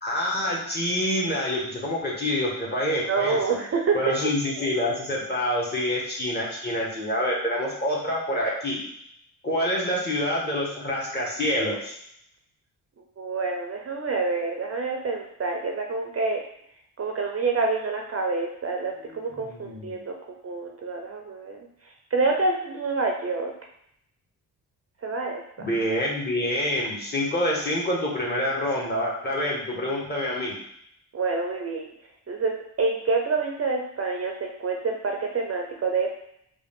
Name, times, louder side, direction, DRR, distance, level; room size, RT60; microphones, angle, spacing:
voice 1, 0.0-3.6 3.9-8.8 9.4-11.9 19.0-19.9 25.6-30.6, left 1 dB, 25° left, -4 dB, 1.5 m, -27 dB
voice 2, 3.1-4.1 13.2-16.4 17.0-21.6 22.1-23.5 25.0-25.7 31.1-31.9 32.3-36.2, right 4 dB, 35° right, 1 dB, 0.6 m, -27 dB
3.7 x 2.5 x 3.6 m, 0.72 s
cardioid pair, 65°, 39 cm